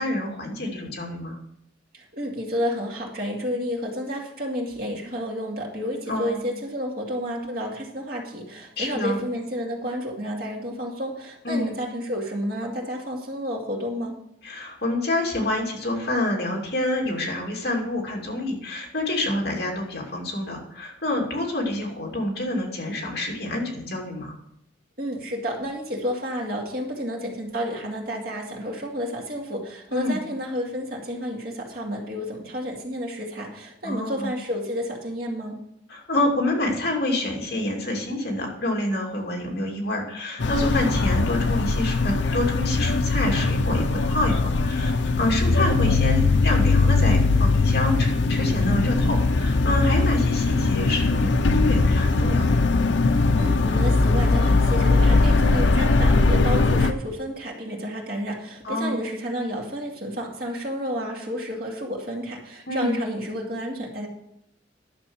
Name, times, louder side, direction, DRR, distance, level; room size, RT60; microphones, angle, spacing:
voice 1, 0.0-1.4 6.1-6.5 8.8-9.2 11.4-11.7 14.4-24.3 29.9-30.2 33.8-34.3 35.9-52.7 58.6-59.0 62.7-63.0, left 1 dB, 55° left, 0 dB, 2.6 m, -27 dB
voice 2, 1.9-14.2 25.0-35.6 53.4-64.1, equal, 50° right, -1 dB, 2.3 m, -31 dB
sound 1, 40.4-56.9, left 3 dB, 75° left, 0.6 m, -20 dB
11.0 x 6.7 x 6.3 m, 0.75 s
head